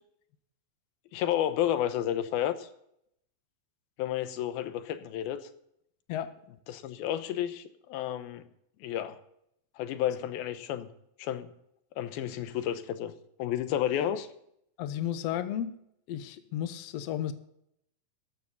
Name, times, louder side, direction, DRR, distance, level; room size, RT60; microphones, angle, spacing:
voice 1, 1.1-2.7 4.0-5.4 6.7-8.4 8.8-9.2 9.8-10.9 11.2-11.5 12.0-13.1 13.4-14.3, left 11 dB, 90° left, 2.9 m, -31 dB
voice 2, 14.8-15.8 16.1-17.3, left 10 dB, 70° left, 1.5 m, -33 dB
14.5 x 12.5 x 4.0 m
omnidirectional pair, 4.2 m